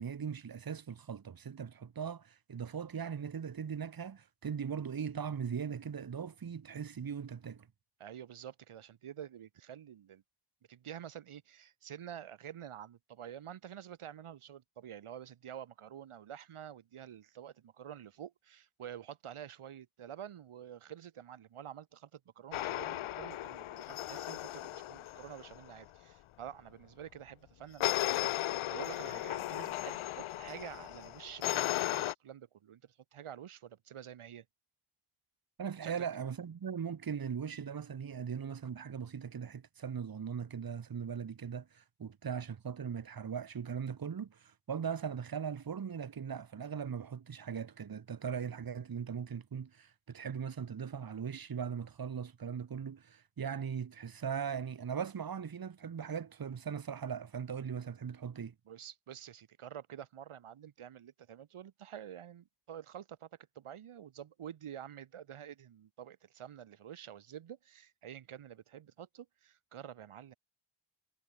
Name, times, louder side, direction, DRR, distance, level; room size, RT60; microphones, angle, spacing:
voice 1, 0.0-7.7 35.6-58.5, right 7 dB, 45° right, 1.5 m, -39 dB
voice 2, 8.0-10.2 10.7-34.5 35.8-36.1 58.7-63.3 63.6-70.3, right 9 dB, 85° right, 2.4 m, -48 dB
sound 1, 22.5-25.7 27.8-32.1, left 14 dB, 75° left, 0.6 m, -36 dB
cardioid pair, 85°, 49 cm